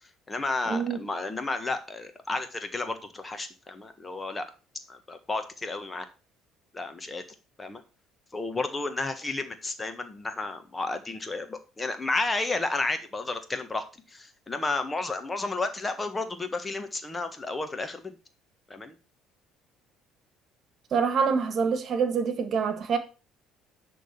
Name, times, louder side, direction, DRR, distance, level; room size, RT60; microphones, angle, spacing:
voice 1, 0.0-4.5 4.9-6.1 6.7-7.2 7.6-7.8 8.3-18.2 18.7-19.0, left 3 dB, 25° left, 1.6 m, -32 dB
voice 2, 0.7-1.0 20.9-23.0, right 6 dB, 50° right, 1.7 m, -26 dB
10.0 x 3.9 x 6.8 m
hypercardioid pair, 65°, 0 cm